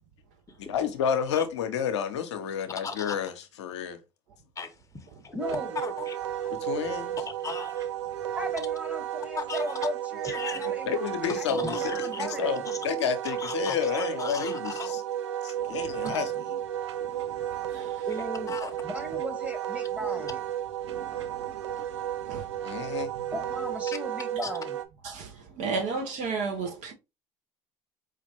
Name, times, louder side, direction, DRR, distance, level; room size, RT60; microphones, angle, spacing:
voice 1, 0.7-3.3 3.6-4.0 6.6-7.2 10.6-15.0 15.4-16.6 22.6-23.1, left 8 dB, 85° left, 0.6 m, -30 dB
voice 2, 2.8-3.2 4.6-5.4 5.8-6.5 7.2-7.9 9.4-9.7 10.2-10.7 11.3-12.2 12.6-12.9 13.2-15.0 16.0-16.2 18.5-18.8 24.4-24.5, left 4 dB, 20° left, 0.8 m, -38 dB
voice 3, 5.3-5.8 8.4-12.6 18.1-18.6 18.8-20.4 23.3-24.8, equal, 10° right, 1.3 m, -37 dB
Wind instrument woodwind instrument, 5.4-24.8, right 11 dB, 90° right, 0.4 m, -33 dB
voice 4, 15.6-16.2 16.9-18.1 20.8-21.8 22.2-23.0 25.0-26.9, right 4 dB, 60° right, 1.0 m, -36 dB
4.7 x 2.5 x 2.9 m
hypercardioid pair, 70°, 14 cm